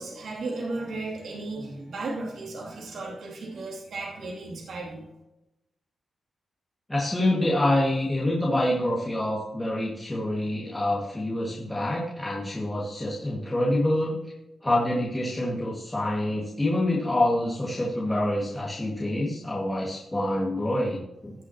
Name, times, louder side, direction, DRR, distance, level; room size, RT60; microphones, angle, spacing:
voice 1, 0.0-5.1, right 2 dB, 80° right, -3 dB, 2.7 m, -35 dB
voice 2, 6.9-14.2 14.6-21.3, left 1 dB, 15° left, -5 dB, 1.9 m, -26 dB
17.0 x 6.1 x 2.9 m, 0.92 s
wide cardioid pair, 135°, 0 cm